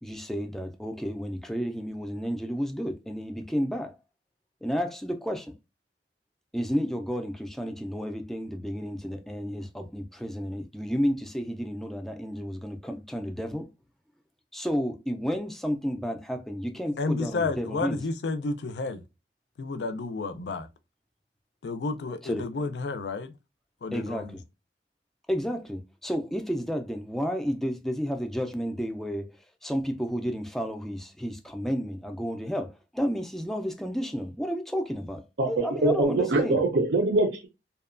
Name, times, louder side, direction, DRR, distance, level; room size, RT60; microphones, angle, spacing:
voice 1, 0.0-3.9 4.6-5.5 6.5-13.7 14.5-18.0 22.2-22.5 23.9-24.4 25.3-29.3 29.6-36.6, equal, ahead, 0.3 m, -31 dB
voice 2, 17.0-19.0 19.6-20.7 21.6-23.3 23.8-24.3, left 3 dB, 75° left, 0.4 m, -31 dB
voice 3, 35.4-37.5, right 2 dB, 70° right, 0.5 m, -24 dB
2.7 x 2.2 x 2.4 m
head